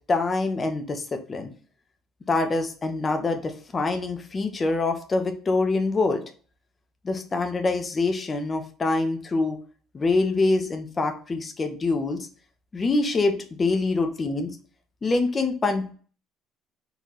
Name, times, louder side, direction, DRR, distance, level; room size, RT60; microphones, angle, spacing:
voice 1, 0.1-1.5 2.3-6.2 7.0-9.6 9.9-12.3 12.7-14.5 15.0-15.9, left 3 dB, 20° left, 5 dB, 0.6 m, -25 dB
4.2 x 4.0 x 3.0 m, 0.41 s
cardioid pair, 170°, 0 cm